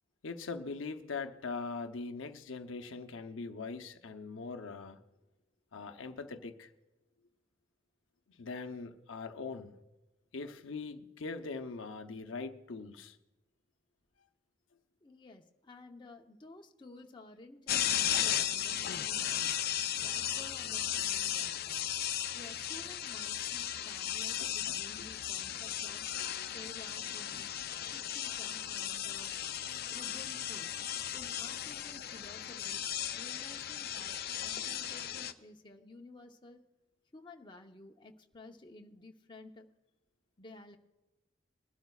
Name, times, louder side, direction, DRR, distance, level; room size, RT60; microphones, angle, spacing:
voice 1, 0.2-5.1 5.7-6.7 8.3-9.8 10.3-13.2 24.4-25.0, left 4 dB, 90° left, 0.7 m, -42 dB
voice 2, 15.0-19.7 20.0-21.9 22.3-26.0 26.5-27.5 27.8-29.3 29.8-30.8 31.1-36.6 37.1-39.7 40.4-40.8, left 2 dB, 25° left, 0.8 m, -53 dB
sound 1, 17.7-35.3, left 11 dB, 50° left, 0.5 m, -36 dB
22.0 x 12.0 x 2.4 m
head